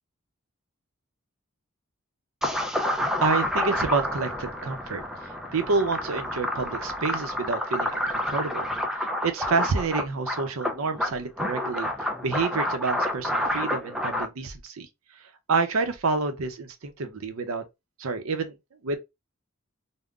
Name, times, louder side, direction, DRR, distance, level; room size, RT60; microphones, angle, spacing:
sound 1, 2.4-14.3, left 1 dB, ahead, 0.4 m, -29 dB
voice 1, 3.2-5.0 5.5-8.7 9.0-14.9 15.1-17.6 18.0-18.6 18.8-19.0, right 4 dB, 75° right, 0.6 m, -28 dB
3.6 x 2.1 x 2.3 m
head